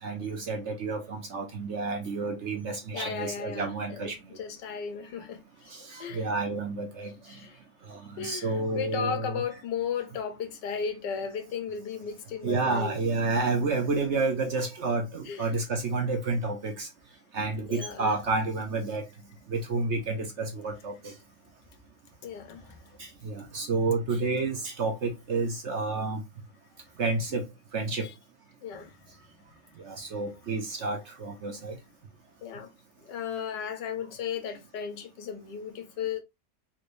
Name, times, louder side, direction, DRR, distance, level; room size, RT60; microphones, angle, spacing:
voice 1, 0.0-4.2 5.7-7.4 7.9-9.4 12.4-16.9 17.3-19.1 19.5-21.1 23.0-26.2 27.0-27.5 27.7-28.1 29.8-31.8, right 3 dB, 55° right, 0.9 m, -30 dB
voice 2, 2.9-5.7 6.0-6.3 7.3-7.6 8.2-13.0 15.2-15.5 17.7-18.2 22.2-22.8 28.0-28.1 28.6-29.0 32.4-32.7 33.1-36.2, left 7 dB, 85° left, 1.5 m, -35 dB
3.9 x 3.2 x 2.5 m
omnidirectional pair, 1.8 m